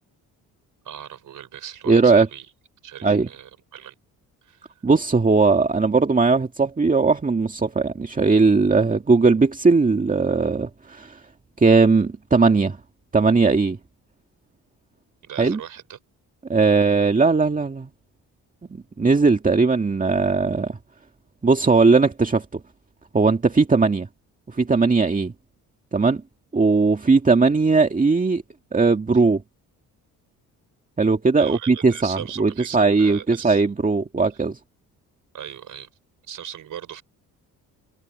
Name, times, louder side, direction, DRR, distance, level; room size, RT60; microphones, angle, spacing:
voice 1, 0.8-2.5 2.8-3.9 4.4-4.8 15.2-16.0 31.4-33.6 34.3-34.4 35.3-35.9 36.3-37.0, right 9 dB, 60° right, 4.6 m, -38 dB
voice 2, 1.9-2.3 3.0-3.3 4.8-11.2 11.6-12.8 13.1-13.8 15.4-15.6 16.5-17.9 19.0-20.8 21.4-22.6 23.1-24.1 24.5-25.3 25.9-26.2 26.5-28.4 28.7-29.4 31.0-34.6, right 4 dB, 25° right, 2.0 m, -18 dB
cardioid pair, 80°, 35 cm